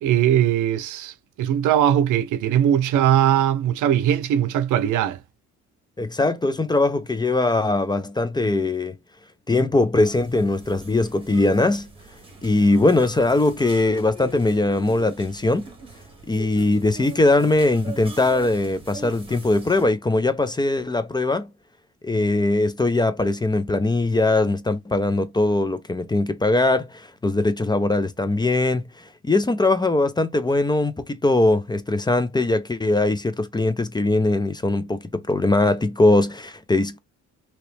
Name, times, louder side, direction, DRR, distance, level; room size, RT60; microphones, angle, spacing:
voice 1, 0.0-5.2, right 10 dB, 85° right, 0.6 m, -20 dB
voice 2, 6.0-9.0 9.5-11.9 12.4-15.7 16.3-21.5 22.0-28.9 29.2-37.0, left 2 dB, 15° left, 0.5 m, -21 dB
sound 1, 9.9-19.9, right 2 dB, 15° right, 1.4 m, -42 dB
2.9 x 2.8 x 3.2 m
cardioid pair, 90°, 30 cm